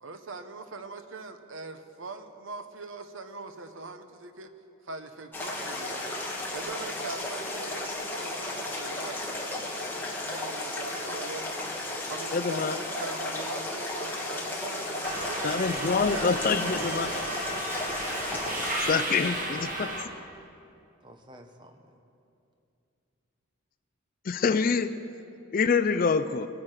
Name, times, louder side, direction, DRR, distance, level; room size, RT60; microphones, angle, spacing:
voice 1, 0.0-4.5 4.8-6.0 6.5-9.5 10.2-11.5 12.0-14.9 15.2-17.5, right 3 dB, 70° right, 8 dB, 0.9 m, -41 dB
sound 1, 5.3-18.8, left 1 dB, 10° left, 1.5 m, -34 dB
voice 2, 12.3-12.7 15.4-17.1 18.9-19.9 24.3-24.9 25.5-26.5, left 5 dB, 40° left, 12 dB, 0.4 m, -26 dB
Subway metro underground, 15.0-20.0, right 1 dB, 40° right, 1.5 m, -34 dB
voice 3, 18.3-20.0 21.0-21.8, right 1 dB, 20° right, 5 dB, 0.9 m, -49 dB
21.5 x 8.7 x 4.9 m, 2.6 s
head